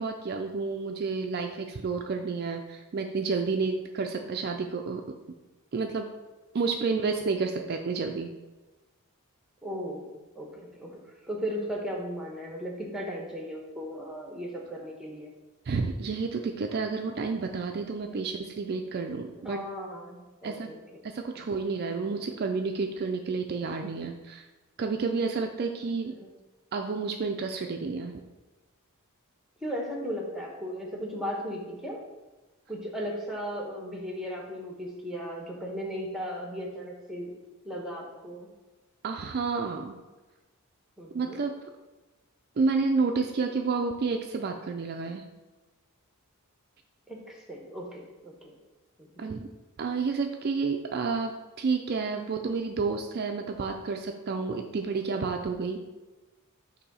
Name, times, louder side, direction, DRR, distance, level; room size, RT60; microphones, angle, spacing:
voice 1, 0.0-5.0 5.7-6.1 6.5-8.3 15.7-19.6 20.4-20.7 21.0-24.4 24.8-26.1 26.7-28.2 39.0-39.9 41.1-41.6 42.6-45.2 49.2-49.5 49.8-55.8, right 4 dB, 45° right, 4 dB, 0.4 m, -30 dB
voice 2, 9.6-10.1 10.3-11.0 11.3-15.3 19.4-20.8 21.3-21.6 26.1-26.3 29.6-32.0 32.7-37.3 37.6-38.5 41.0-41.4 47.1-48.5 49.0-49.3, equal, ahead, 0 dB, 1.0 m, -36 dB
6.9 x 2.8 x 5.4 m, 1.2 s
head